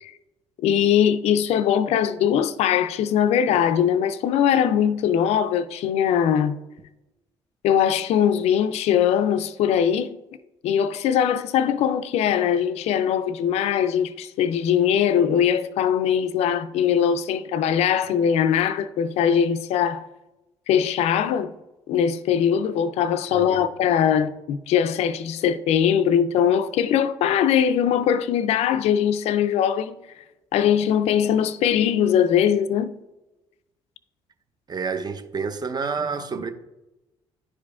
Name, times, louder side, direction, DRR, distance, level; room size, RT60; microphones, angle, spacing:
voice 1, 0.6-6.6 7.6-10.2 10.6-20.1 20.7-21.5 21.9-30.0 30.5-32.9, left 8 dB, 70° left, 0.4 m, -21 dB
voice 2, 23.3-23.7 34.7-36.5, right 5 dB, 40° right, 0.8 m, -29 dB
11.0 x 4.9 x 2.4 m
supercardioid pair, 65°, 11 cm